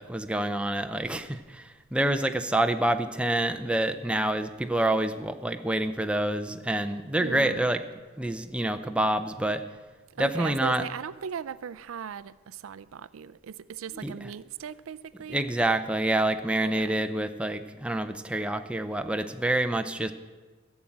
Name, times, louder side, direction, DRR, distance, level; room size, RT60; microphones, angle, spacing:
voice 1, 0.0-7.8 8.2-9.6 10.2-10.8 14.0-14.1 15.3-20.1, right 1 dB, 5° right, 7 dB, 0.5 m, -27 dB
voice 2, 7.1-7.7 10.1-15.4 16.6-17.0, right 7 dB, 70° right, 17 dB, 0.4 m, -38 dB
13.0 x 7.3 x 8.6 m, 1.4 s
head